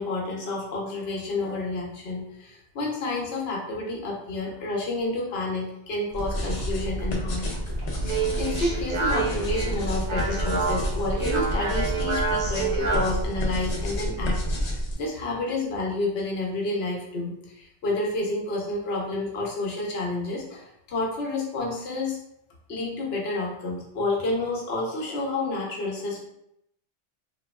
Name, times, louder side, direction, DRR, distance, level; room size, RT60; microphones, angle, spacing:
voice 1, 0.0-7.5 8.4-22.2 22.7-26.2, left 2 dB, 70° left, -2 dB, 0.9 m, -30 dB
sound 1, 6.1-15.0, equal, 50° left, 0.5 m, -31 dB
sound 2, 6.2-14.7, equal, 20° right, 1.0 m, -34 dB
Speech, 7.8-13.2, right 4 dB, 80° right, 1.0 m, -29 dB
3.0 x 2.2 x 2.2 m, 0.77 s
omnidirectional pair, 1.1 m